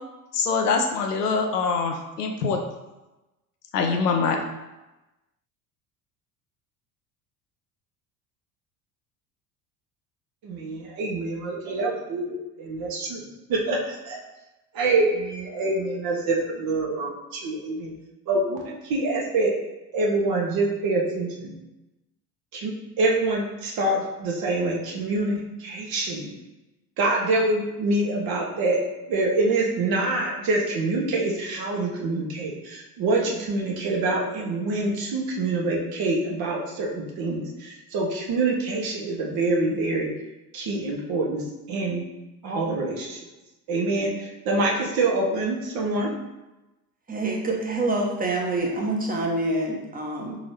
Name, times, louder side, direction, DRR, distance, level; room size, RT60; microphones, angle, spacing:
voice 1, 0.3-2.6 3.7-4.4, left 4 dB, 85° left, 3 dB, 0.7 m, -24 dB
voice 2, 10.4-13.2 13.5-14.2 14.7-17.9 18.3-19.5 19.9-21.5 22.5-26.3 27.0-28.8 29.1-40.1 40.5-41.4 41.7-42.1 42.4-43.2 43.7-46.1, right 2 dB, 50° right, -2 dB, 1.2 m, -26 dB
voice 3, 47.1-50.4, right 2 dB, 20° right, -1 dB, 1.0 m, -26 dB
4.1 x 3.8 x 3.2 m, 1.0 s
hypercardioid pair, 65°, 45 cm